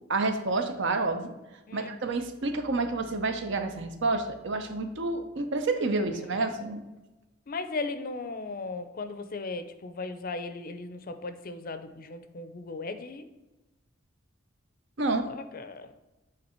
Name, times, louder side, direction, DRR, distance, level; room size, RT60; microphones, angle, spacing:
voice 1, 0.1-1.3 1.7-6.8 15.0-15.3, right 3 dB, 60° right, 7 dB, 0.7 m, -29 dB
voice 2, 7.5-13.2 15.3-15.9, left 3 dB, 45° left, 9 dB, 0.5 m, -37 dB
7.9 x 3.7 x 4.4 m, 1.1 s
head